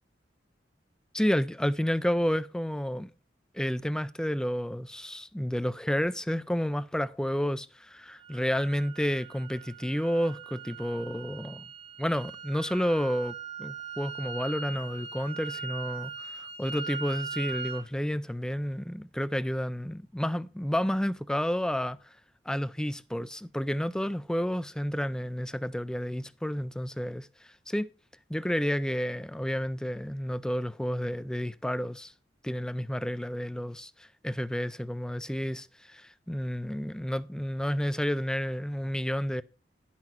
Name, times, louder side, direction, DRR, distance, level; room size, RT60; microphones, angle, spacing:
voice 1, 1.1-3.1 3.5-11.7 12.0-16.1 16.6-22.1 22.5-27.9 28.3-32.1 32.4-39.4, equal, 5° left, 0.3 m, -30 dB
sound 1, 8.2-17.9, right 6 dB, 35° right, 0.9 m, -40 dB
10.5 x 5.8 x 4.5 m
head